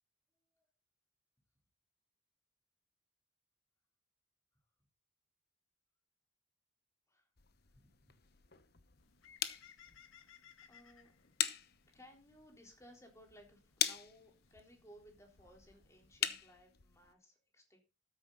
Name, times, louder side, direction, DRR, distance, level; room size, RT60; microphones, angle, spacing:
sound 1, 7.4-17.1, left 10 dB, 50° left, 0.9 m, -43 dB
Bird, 9.0-16.3, left 8 dB, 85° left, 1.4 m, -64 dB
voice 1, 10.7-11.1 11.9-17.8, equal, 15° left, 2 dB, 3.7 m, -61 dB
13.5 x 9.8 x 4.0 m, 0.29 s
head